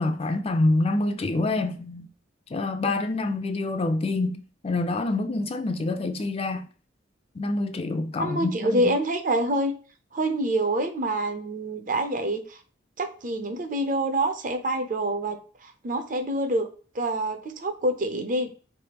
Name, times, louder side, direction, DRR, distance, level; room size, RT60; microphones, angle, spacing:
voice 1, 0.0-2.1 2.5-6.7 7.4-8.9, left 2 dB, 30° left, 0.4 m, -26 dB
voice 2, 8.2-9.7 10.1-12.6 13.0-15.4 15.6-16.7 16.9-18.5, right 1 dB, 40° right, 0.7 m, -26 dB
3.9 x 3.4 x 2.9 m
head